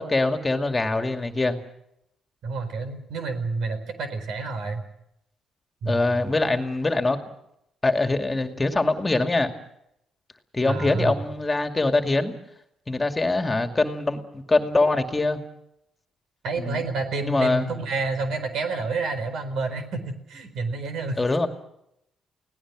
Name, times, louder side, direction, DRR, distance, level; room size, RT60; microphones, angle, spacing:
voice 1, 0.0-1.6 5.8-7.2 7.8-9.5 10.5-12.3 12.9-15.4 16.6-16.8 17.2-17.7 21.2-21.5, left 2 dB, 20° left, 6 dB, 2.3 m, -23 dB
voice 2, 2.4-4.8 5.8-6.2 10.7-11.3 16.4-21.2, right 3 dB, 75° right, 8 dB, 4.3 m, -29 dB
29.5 x 18.0 x 6.2 m, 0.79 s
cardioid pair, 90°, 0 cm